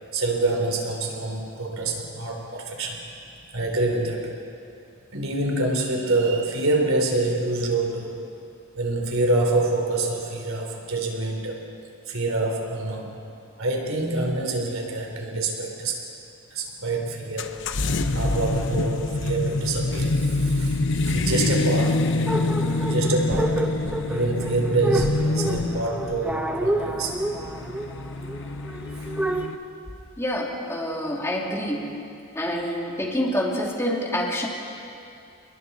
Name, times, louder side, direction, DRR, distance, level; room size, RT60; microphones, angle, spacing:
voice 1, 0.1-3.0 3.5-4.4 5.1-8.2 8.8-11.6 12.1-13.1 13.6-16.0 16.5-17.6 18.1-22.1 22.8-23.7 24.1-27.1, right 2 dB, 85° right, 1 dB, 3.5 m, -26 dB
sound 1, 17.4-29.6, left 2 dB, 65° left, 0.9 m, -26 dB
sound 2, 22.3-29.5, right 1 dB, 5° right, 0.9 m, -29 dB
voice 2, 30.2-32.0 32.3-34.5, equal, 15° left, -2 dB, 2.7 m, -27 dB
29.0 x 21.0 x 4.2 m, 2.6 s
head